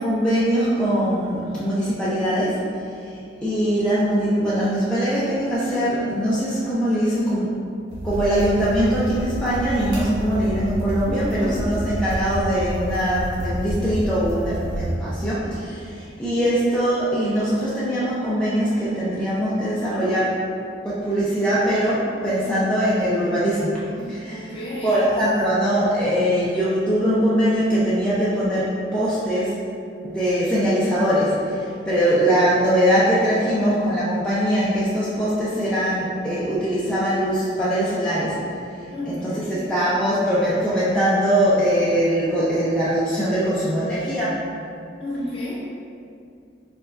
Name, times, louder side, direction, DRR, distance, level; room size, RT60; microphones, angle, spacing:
voice 1, 0.0-2.6 2.9-7.5 8.0-20.4 20.8-24.6 24.8-29.6 30.0-38.4 39.1-44.3, equal, 5° left, -11 dB, 0.5 m, -22 dB
sound 1, 7.9-14.9, equal, 85° right, 1.4 m, -29 dB
voice 2, 11.0-11.6 24.3-25.0 38.9-39.6 43.5-43.8 45.0-45.6, left 1 dB, 30° left, -6 dB, 0.9 m, -32 dB
4.6 x 4.2 x 2.5 m, 2.4 s
head